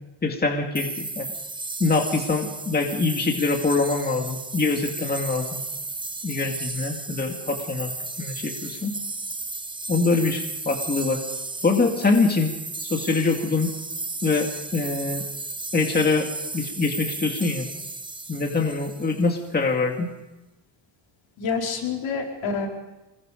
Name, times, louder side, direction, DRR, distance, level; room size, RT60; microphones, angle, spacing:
voice 1, 0.2-1.3 1.8-5.6 6.2-8.9 9.9-11.2 11.6-12.5 12.8-13.7 14.2-15.3 15.7-17.7 18.3-20.1, left 3 dB, 20° left, 2 dB, 2.2 m, -24 dB
sound 1, 0.7-19.4, right 3 dB, 10° right, 0.9 m, -34 dB
voice 2, 21.4-22.7, left 5 dB, 80° left, 0 dB, 4.8 m, -27 dB
26.5 x 21.0 x 5.2 m, 1.0 s
cardioid pair, 150°, 45 cm